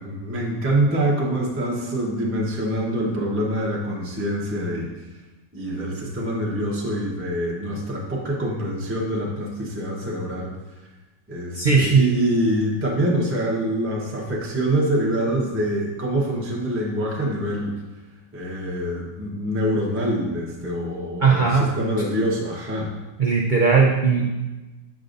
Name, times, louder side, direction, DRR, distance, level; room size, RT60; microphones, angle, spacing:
voice 1, 0.0-4.9 5.5-10.5 11.3-17.7 18.3-22.9, right 1 dB, 10° right, -4 dB, 0.7 m, -25 dB
voice 2, 11.6-12.0 21.2-21.7 23.2-24.3, right 5 dB, 65° right, -3 dB, 0.4 m, -18 dB
6.5 x 6.2 x 2.5 m, 1.1 s
omnidirectional pair, 1.6 m